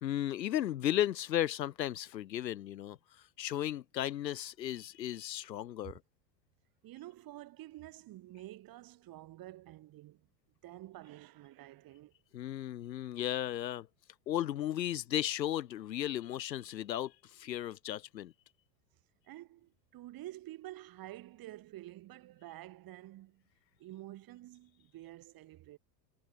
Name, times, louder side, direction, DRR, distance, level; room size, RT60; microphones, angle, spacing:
voice 1, 0.0-3.0 3.4-6.0 12.3-13.9 14.3-18.3, left 12 dB, 85° left, 0.9 m, -35 dB
voice 2, 6.8-10.3 10.6-12.1 19.3-23.4 23.8-25.8, right 15 dB, 45° right, 4.5 m, -49 dB
hypercardioid pair, 85°, 49 cm